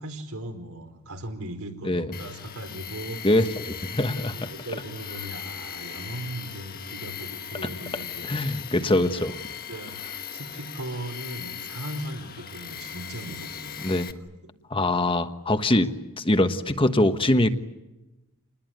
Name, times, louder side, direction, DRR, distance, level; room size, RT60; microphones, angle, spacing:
voice 1, 0.0-3.2 4.1-8.6 9.5-10.0 10.3-14.0, right 1 dB, 80° right, 5 dB, 4.6 m, -38 dB
Tools, 2.1-14.1, left 8 dB, 40° left, 1.5 m, -39 dB
voice 2, 3.2-4.5 8.3-9.3 13.8-14.1 14.7-15.9 16.2-17.5, left 1 dB, 25° left, 8 dB, 1.2 m, -23 dB
28.5 x 20.5 x 9.3 m, 1.0 s
head